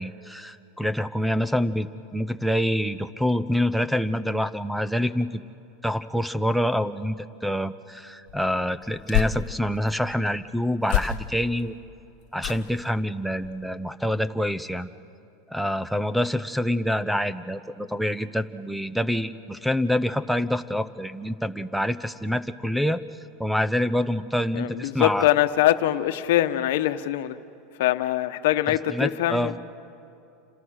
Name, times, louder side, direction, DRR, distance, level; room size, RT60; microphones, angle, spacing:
voice 1, 0.0-5.4 5.8-11.7 12.3-14.9 15.5-23.0 23.4-25.3 28.9-29.5, equal, ahead, 15 dB, 0.7 m, -26 dB
sound 1, 8.3-9.9 10.8-11.6 12.4-12.9 13.4-13.7 14.0-14.1, left 12 dB, 60° left, 1.4 m, -29 dB
voice 2, 24.5-27.4 27.8-29.5, left 14 dB, 75° left, 11 dB, 1.1 m, -23 dB
28.5 x 26.5 x 6.5 m, 2.6 s
supercardioid pair, 140°, 0 cm